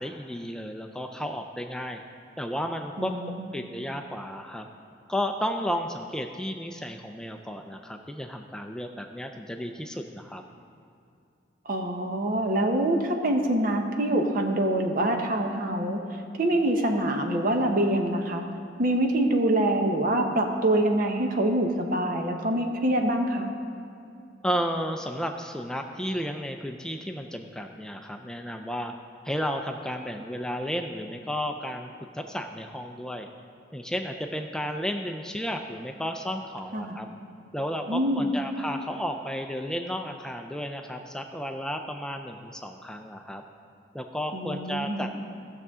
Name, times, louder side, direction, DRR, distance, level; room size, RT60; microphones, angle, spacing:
voice 1, 0.0-2.0 2.4-3.1 3.5-4.7 5.1-10.4 24.4-28.9 29.2-31.9 32.1-33.3 33.7-37.1 37.5-43.4 43.9-45.1, equal, 5° left, 4 dB, 0.4 m, -33 dB
voice 2, 3.0-3.5 11.7-16.0 16.4-18.4 18.8-23.5 36.7-37.0 37.9-38.3 44.3-45.1, right 1 dB, 50° right, 3 dB, 0.9 m, -25 dB
16.0 x 6.8 x 3.6 m, 2.5 s
head